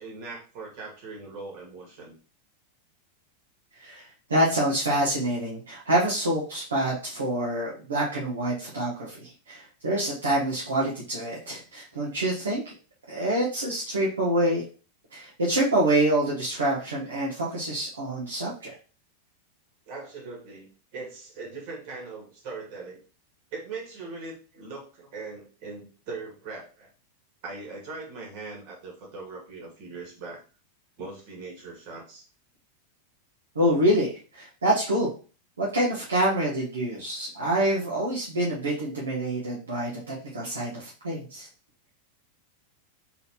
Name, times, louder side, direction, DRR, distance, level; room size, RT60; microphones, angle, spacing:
voice 1, 0.0-2.1 19.9-23.0 23.5-26.9 27.4-30.4 31.0-32.2, right 3 dB, 45° right, -2 dB, 2.0 m, -40 dB
voice 2, 3.8-12.7 13.1-14.6 15.1-18.7 33.5-35.1 35.6-41.5, right 1 dB, 70° right, -6 dB, 1.2 m, -26 dB
4.0 x 3.9 x 2.9 m, 0.37 s
figure-of-eight pair, 90°, 0 cm